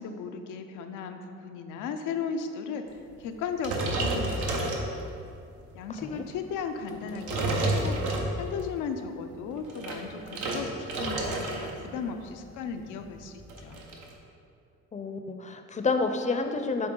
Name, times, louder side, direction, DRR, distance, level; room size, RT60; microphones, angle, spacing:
voice 1, 0.0-5.0 5.7-8.0 8.3-13.3 13.6-13.8, left 5 dB, 90° left, 6 dB, 0.5 m, -36 dB
sound 1, 3.6-5.3 5.9-6.1 6.9-8.7 9.5-11.8 12.0-12.4 12.7-12.8 13.0-14.1, right 2 dB, 85° right, 0.9 m, -30 dB
voice 2, 14.9-16.9, left 3 dB, 25° left, 6 dB, 0.5 m, -29 dB
7.8 x 3.4 x 3.8 m, 2.5 s
cardioid pair, 90°, 30 cm